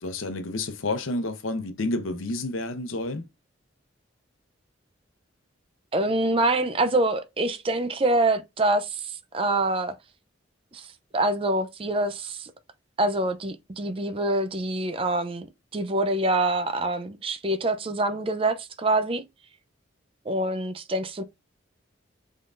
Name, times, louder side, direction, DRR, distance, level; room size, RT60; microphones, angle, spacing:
voice 1, 0.0-3.2, left 2 dB, 90° left, 0.8 m, -30 dB
voice 2, 5.9-9.9 10.7-10.9 11.1-12.5 13.0-15.5 15.7-19.2 20.3-21.2, right 2 dB, 25° right, 0.5 m, -25 dB
5.4 x 3.8 x 2.5 m
head